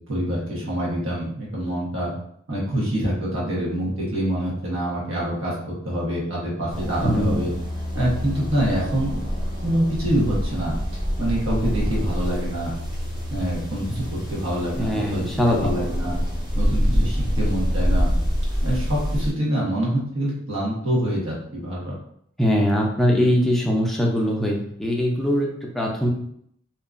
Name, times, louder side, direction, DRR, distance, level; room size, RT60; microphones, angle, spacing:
voice 1, 0.0-2.1 2.5-5.5 5.8-7.5 7.9-9.2 9.6-10.8 11.2-12.7 13.3-16.2 16.5-18.1 18.6-21.9, right 1 dB, 85° right, -5 dB, 1.1 m, -25 dB
sound 1, 6.7-19.3, equal, 20° right, 0.8 m, -26 dB
voice 2, 7.0-7.3 14.8-15.7 22.4-26.1, equal, ahead, -2 dB, 0.4 m, -21 dB
2.8 x 2.3 x 2.4 m, 0.70 s
head